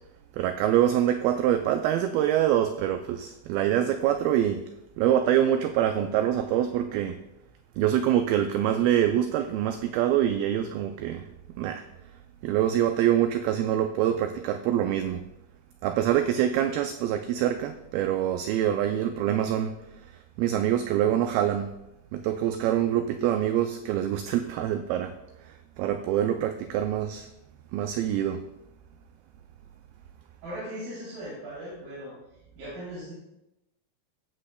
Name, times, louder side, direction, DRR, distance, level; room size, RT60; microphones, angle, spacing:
voice 1, 0.3-4.6 5.0-7.2 7.8-11.3 11.6-11.8 12.4-15.2 15.8-19.8 20.4-21.7 22.1-25.2 25.4-27.3 27.7-28.4, right 11 dB, 85° right, 7 dB, 2.1 m, -25 dB
voice 2, 30.4-32.1 32.5-33.1, right 1 dB, 60° right, -8 dB, 4.7 m, -38 dB
15.5 x 8.5 x 2.2 m, 0.89 s
omnidirectional pair, 4.7 m